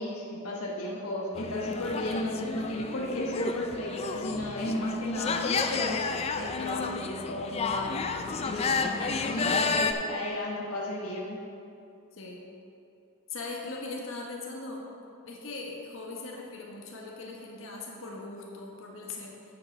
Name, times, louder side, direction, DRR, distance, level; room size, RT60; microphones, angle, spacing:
voice 1, 0.0-6.1 6.3-8.0 8.4-11.4, left 1 dB, 90° left, -3 dB, 1.2 m, -34 dB
sound 1, 1.4-9.9, left 4 dB, 30° left, 0.3 m, -31 dB
voice 2, 8.5-9.4 12.1-12.4 13.3-14.8 15.2-19.4, left 3 dB, 60° left, -2 dB, 1.4 m, -40 dB
8.4 x 7.6 x 4.6 m, 2.7 s
head